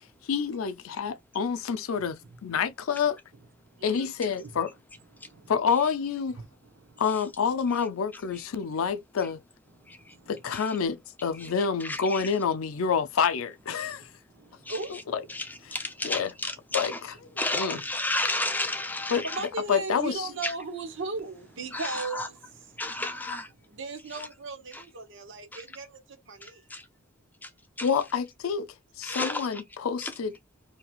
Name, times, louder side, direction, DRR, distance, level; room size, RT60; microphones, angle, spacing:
voice 1, 0.2-3.2 3.8-4.7 5.5-6.4 7.0-9.4 10.3-14.1 15.1-15.2 16.0-16.3 16.7-16.9 17.5-17.8 19.1-19.3 19.7-20.3 27.8-28.7 29.0-30.3, left 6 dB, 80° left, 0.4 m, -28 dB
voice 2, 3.8-4.1 4.4-4.5 5.3-5.4 6.3-6.5 14.7-14.9 19.2-22.4 23.7-25.9 26.3-26.6, right 3 dB, 60° right, 0.8 m, -36 dB
voice 3, 9.8-10.2 10.5-10.8 11.3-11.5 11.8-12.3 14.4-15.0 15.3-17.0 17.4-19.5 20.4-20.5 21.7-22.3 22.8-23.5 24.1-24.3 24.7-24.8 25.5-25.6 26.4-26.9 27.4-27.5 27.8-27.9 29.0-29.6 30.0-30.1, left 2 dB, 10° left, 0.5 m, -33 dB
2.9 x 2.8 x 2.2 m
head